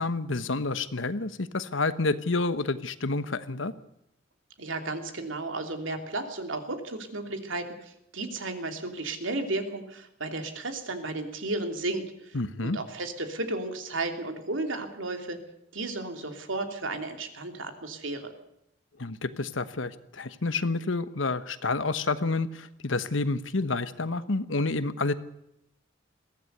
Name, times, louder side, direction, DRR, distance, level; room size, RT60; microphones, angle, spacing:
voice 1, 0.0-3.7 12.3-12.8 19.0-25.1, left 3 dB, 75° left, 13 dB, 1.2 m, -29 dB
voice 2, 4.6-15.4 15.7-18.3, right 2 dB, 80° right, 6 dB, 3.0 m, -34 dB
22.0 x 16.0 x 8.1 m, 0.81 s
head